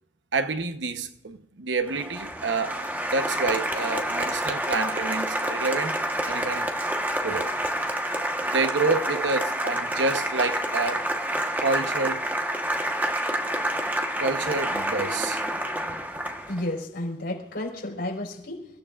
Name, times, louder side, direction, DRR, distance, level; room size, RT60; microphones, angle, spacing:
voice 1, 0.3-6.7 7.2-7.5 8.4-11.1 11.6-12.3 14.2-15.4, right 3 dB, 80° right, 1.0 m, -28 dB
Applause, 1.9-16.7, right 1 dB, 10° right, 1.3 m, -28 dB
voice 2, 16.5-18.7, left 1 dB, 65° left, 4.7 m, -32 dB
29.0 x 16.0 x 2.5 m
head